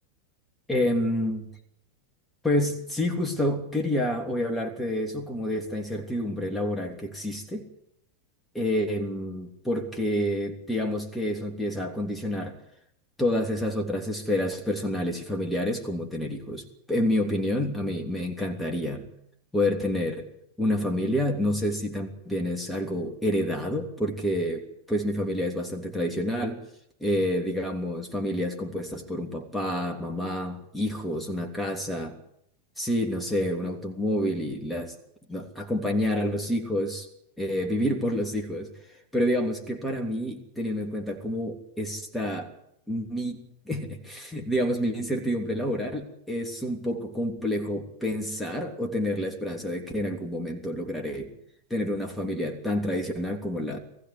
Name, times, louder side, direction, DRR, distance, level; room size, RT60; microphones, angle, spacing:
voice 1, 0.7-1.5 2.4-7.7 8.5-12.6 13.2-19.1 19.5-20.3 20.6-26.6 27.0-32.2 32.8-34.9 35.3-37.1 37.4-42.5 42.9-51.3 51.7-53.8, left 1 dB, 5° left, 2 dB, 3.1 m, -28 dB
20.5 x 15.5 x 9.8 m, 0.76 s
figure-of-eight pair, 90°, 0 cm